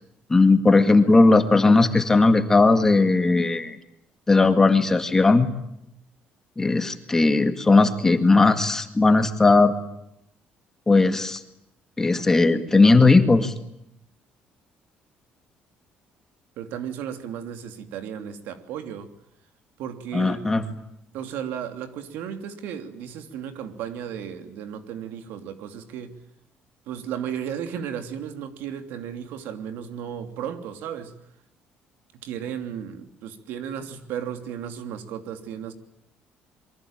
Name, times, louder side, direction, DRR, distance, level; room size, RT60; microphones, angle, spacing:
voice 1, 0.3-3.8 4.3-5.5 6.6-9.7 10.9-11.4 12.0-13.5 20.1-20.6, left 3 dB, 15° left, 2.0 m, -17 dB
voice 2, 16.6-19.1 19.8-20.4 21.1-26.2 26.9-31.2 32.1-35.7, right 8 dB, 85° right, 3.0 m, -34 dB
27.0 x 23.5 x 9.0 m
cardioid pair, 160°, 3 cm